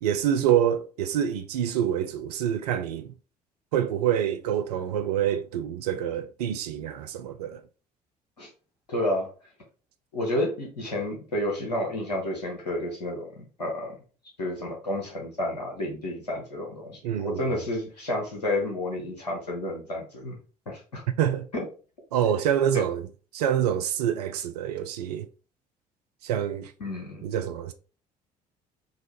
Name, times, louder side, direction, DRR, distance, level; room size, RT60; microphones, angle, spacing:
voice 1, 0.0-3.1 3.7-7.6 17.0-17.4 21.2-21.5 22.1-23.1 23.3-25.3 26.2-26.7 27.2-27.7, right 10 dB, 70° right, 0.4 m, -26 dB
voice 2, 8.9-9.3 10.1-13.9 14.4-20.4 20.7-21.0 21.5-21.6 22.7-22.8 26.8-27.3, left 1 dB, 80° left, 1.1 m, -30 dB
3.9 x 2.5 x 3.0 m
figure-of-eight pair, 50°, 21 cm